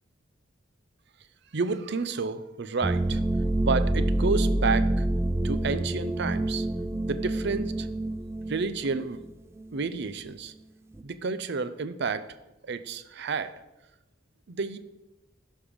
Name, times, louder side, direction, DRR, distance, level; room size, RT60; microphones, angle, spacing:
voice 1, 1.5-3.2 3.6-5.0 5.4-6.7 7.1-7.9 8.5-9.2 9.7-10.5 11.0-12.3 12.7-13.5 14.5-14.8, right 4 dB, 60° right, 13 dB, 0.6 m, -30 dB
sound 1, 2.8-9.3 9.6-9.7 10.9-11.0, right 1 dB, 15° right, 0.3 m, -27 dB
11.5 x 5.5 x 5.1 m, 0.99 s
head